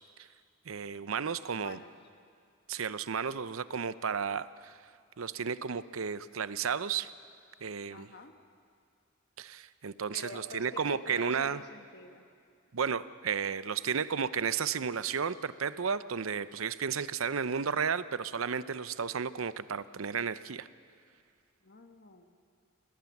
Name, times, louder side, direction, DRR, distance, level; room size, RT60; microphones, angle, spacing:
voice 1, 0.7-1.8 2.7-4.8 5.2-7.1 7.6-8.1 9.4-11.6 12.7-20.7, right 6 dB, 85° right, 15 dB, 0.7 m, -33 dB
voice 2, 1.5-1.9 7.9-8.4 10.1-12.2 21.6-22.2, left 3 dB, 55° left, 6 dB, 1.3 m, -47 dB
27.5 x 19.5 x 7.2 m, 2.3 s
head